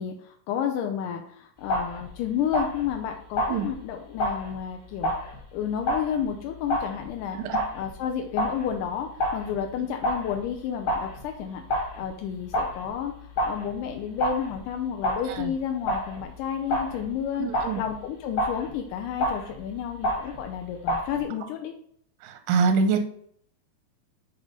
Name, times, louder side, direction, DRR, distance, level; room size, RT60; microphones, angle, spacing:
voice 1, 0.0-5.1 5.5-7.4 7.7-11.6 12.0-13.1 13.4-21.7, left 8 dB, 80° left, 4 dB, 1.8 m, -31 dB
sound 1, 1.6-21.2, equal, 45° left, 1.2 m, -31 dB
voice 2, 17.4-17.8 22.2-23.0, right 5 dB, 80° right, 6 dB, 1.8 m, -25 dB
7.3 x 2.9 x 5.1 m, 0.65 s
omnidirectional pair, 4.3 m